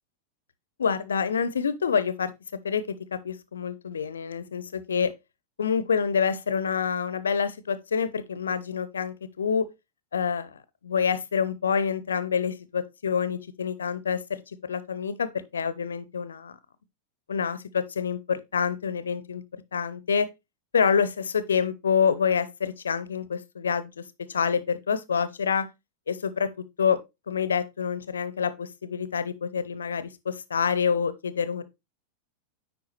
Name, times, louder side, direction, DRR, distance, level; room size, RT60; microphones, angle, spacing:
voice 1, 0.8-2.3 2.6-5.1 5.6-9.7 10.1-10.6 10.8-16.6 17.3-19.4 19.7-20.3 20.7-24.0 24.3-25.7 26.1-27.0 27.3-31.6, left 6 dB, 70° left, 0.6 m, -27 dB
9.3 x 4.6 x 3.1 m
figure-of-eight pair, 90°, 0 cm